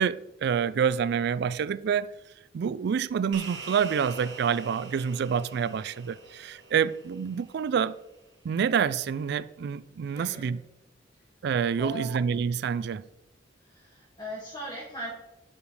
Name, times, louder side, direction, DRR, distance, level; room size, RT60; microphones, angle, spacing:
voice 1, 0.0-2.1 2.5-8.0 8.4-10.6 11.4-13.1, right 7 dB, 60° right, 0.3 m, -27 dB
sound 1, 3.3-8.0, right 4 dB, 80° right, 1.2 m, -45 dB
voice 2, 10.1-10.5 11.8-12.1 13.6-15.1, equal, 25° left, 2.0 m, -39 dB
5.1 x 5.0 x 6.2 m
head